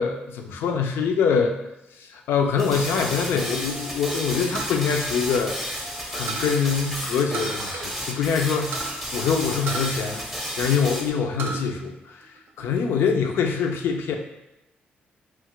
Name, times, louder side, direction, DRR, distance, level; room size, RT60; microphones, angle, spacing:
voice 1, 0.0-1.5 2.1-5.5 6.1-8.8 9.1-10.2 10.6-11.9 12.6-14.2, left 6 dB, 80° left, 4 dB, 0.4 m, -24 dB
sound 1, 2.6-11.1, equal, 5° right, 0.5 m, -32 dB
sound 2, 4.5-5.9 6.3-6.6 7.3-8.0 8.2-8.3 8.7-9.0 9.7-10.8 11.2-11.7 12.1-12.8, right 4 dB, 70° right, 0.4 m, -34 dB
2.7 x 2.4 x 3.0 m, 0.93 s
cardioid pair, 80°, 4 cm